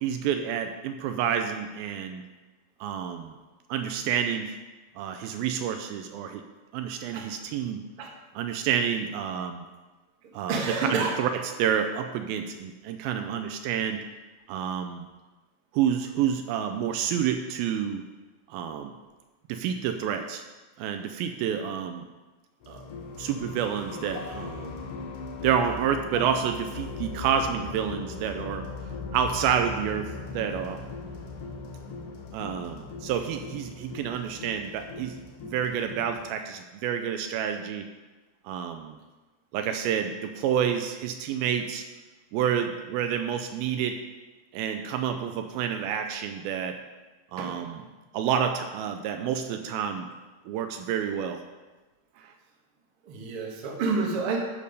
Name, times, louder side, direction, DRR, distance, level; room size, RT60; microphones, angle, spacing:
voice 1, 0.0-2.2 2.8-3.3 3.7-4.5 5.0-6.4 6.7-7.8 8.4-9.7 10.3-14.0 14.5-15.1 15.7-18.0 18.5-18.9 19.5-20.4 20.8-22.1 22.7-22.8 23.2-24.9 25.4-28.7 29.1-30.9 32.3-35.2 35.5-37.9 38.5-39.0 39.5-41.8 42.3-44.0 44.5-46.8 47.3-47.9 48.1-50.1 50.5-51.4, right 8 dB, 85° right, 6 dB, 2.3 m, -29 dB
voice 2, 10.5-11.1 47.4-47.5 53.1-54.4, right 4 dB, 55° right, 0 dB, 1.5 m, -28 dB
sound 1, 22.6-36.3, left 4 dB, 90° left, 1.3 m, -39 dB
11.0 x 5.3 x 5.3 m, 1.2 s
omnidirectional pair, 4.4 m